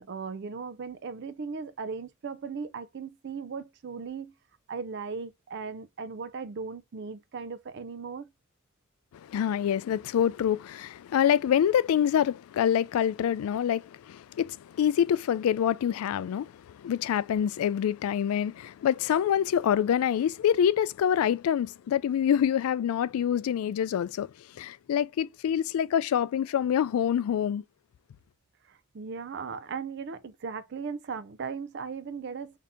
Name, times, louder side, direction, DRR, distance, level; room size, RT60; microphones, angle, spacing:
voice 1, 0.0-4.3 4.7-8.3 28.7-32.6, right 5 dB, 55° right, 0.4 m, -37 dB
voice 2, 9.1-27.6, left 9 dB, 85° left, 0.3 m, -26 dB
3.6 x 2.8 x 3.4 m
head